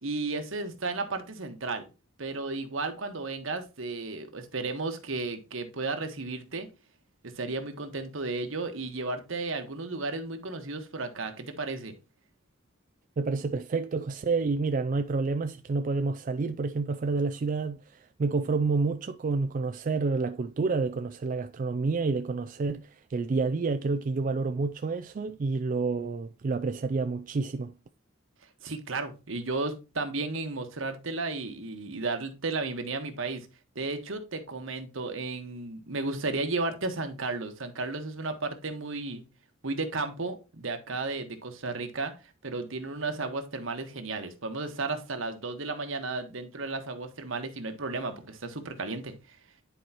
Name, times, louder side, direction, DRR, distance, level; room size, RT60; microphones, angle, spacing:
voice 1, 0.0-1.9 2.2-6.7 7.4-11.9 28.6-33.5 33.7-39.2 39.6-42.1 42.4-49.4, right 3 dB, 70° right, 1.3 m, -33 dB
voice 2, 13.2-27.7, right 4 dB, 40° right, 0.3 m, -29 dB
10.0 x 4.7 x 2.9 m
head